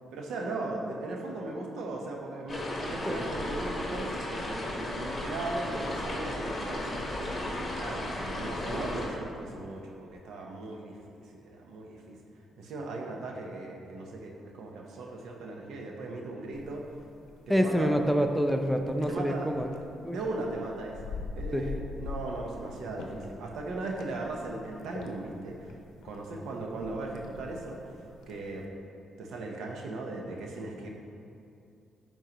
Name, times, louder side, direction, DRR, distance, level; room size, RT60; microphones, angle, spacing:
voice 1, 0.1-7.3 7.7-12.2 12.6-16.8 17.5-18.0 19.1-19.5 20.1-25.8 26.0-27.8 28.3-28.7 29.2-30.9, right 2 dB, 85° right, 1 dB, 0.9 m, -38 dB
sound 1, 2.5-9.1, left 1 dB, 30° left, 1.6 m, -34 dB
sound 2, 16.5-28.7, left 4 dB, 80° left, 0.7 m, -45 dB
voice 2, 17.5-19.7 20.0-20.2 21.5-21.7, equal, ahead, 5 dB, 0.4 m, -26 dB
11.0 x 4.5 x 3.0 m, 2.6 s
cardioid pair, 90°, 0 cm